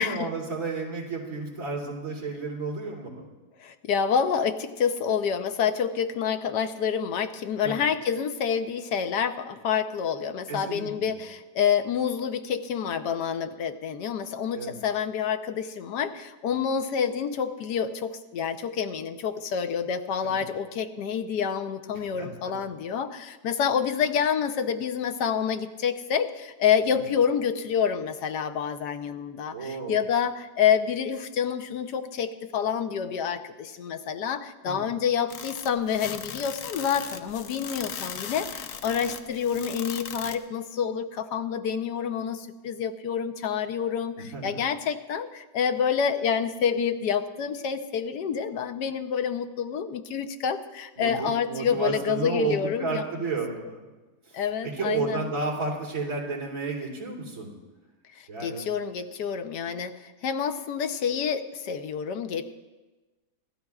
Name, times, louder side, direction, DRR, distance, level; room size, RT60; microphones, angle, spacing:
voice 1, 0.0-3.2 7.6-7.8 10.5-11.1 14.5-14.8 22.0-22.3 26.9-27.0 29.5-30.0 34.7-34.9 44.2-44.5 51.0-53.8 54.3-57.5 58.3-58.7, right 4 dB, 55° right, -4 dB, 3.4 m, -32 dB
voice 2, 3.6-53.0 54.3-55.3 58.1-62.4, left 7 dB, 80° left, 9 dB, 1.4 m, -28 dB
sound 1, 35.3-40.4, left 8 dB, 60° left, 1.0 m, -38 dB
25.5 x 13.5 x 2.4 m, 1.2 s
omnidirectional pair, 1.8 m